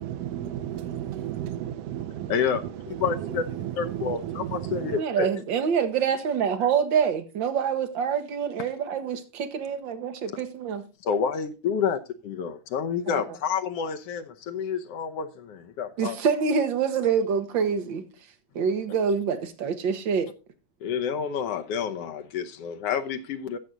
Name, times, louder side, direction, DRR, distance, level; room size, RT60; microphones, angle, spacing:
voice 1, 0.0-5.0, right 11 dB, 70° right, 1.5 m, -33 dB
voice 2, 2.3-3.5 3.8-5.3 11.1-16.1 20.8-23.6, left 7 dB, 65° left, 1.6 m, -29 dB
voice 3, 4.9-10.8 13.1-13.4 16.0-20.3, right 6 dB, 55° right, 1.4 m, -26 dB
14.5 x 6.0 x 3.9 m
omnidirectional pair, 3.5 m